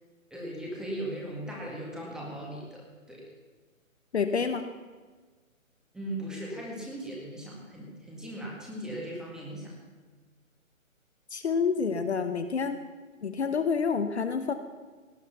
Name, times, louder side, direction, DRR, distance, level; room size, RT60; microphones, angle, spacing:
voice 1, 0.3-3.2 5.9-9.7, right 1 dB, ahead, -3 dB, 1.8 m, -38 dB
voice 2, 4.1-4.6 11.3-12.8 13.2-14.5, left 5 dB, 50° left, 8 dB, 1.0 m, -28 dB
17.5 x 9.6 x 5.7 m, 1.4 s
figure-of-eight pair, 140°, 41 cm